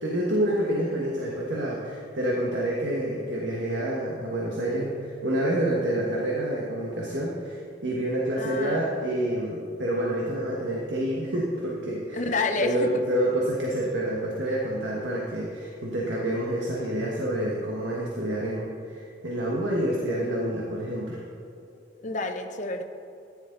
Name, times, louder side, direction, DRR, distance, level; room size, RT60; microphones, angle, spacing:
voice 1, 0.0-12.2 12.6-21.2, right 1 dB, 80° right, -4 dB, 1.5 m, -28 dB
voice 2, 8.4-8.9 12.1-12.9 21.7-22.8, left 3 dB, 45° left, 5 dB, 0.8 m, -29 dB
13.5 x 10.5 x 4.0 m, 2.5 s
head